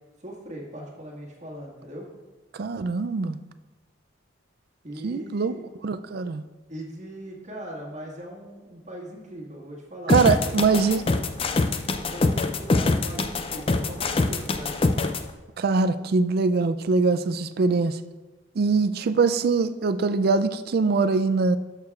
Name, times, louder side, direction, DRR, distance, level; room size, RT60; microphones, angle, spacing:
voice 1, 0.2-2.1 4.8-5.7 6.7-10.8 11.1-11.2 12.0-14.9, right 1 dB, 35° right, 1.7 m, -40 dB
voice 2, 2.6-3.4 5.0-5.5 5.8-6.4 10.1-11.0 15.6-18.0 18.6-21.6, right 4 dB, 55° right, 0.4 m, -22 dB
sound 1, 10.1-15.2, left 3 dB, 30° left, 0.4 m, -24 dB
12.5 x 6.5 x 2.4 m
head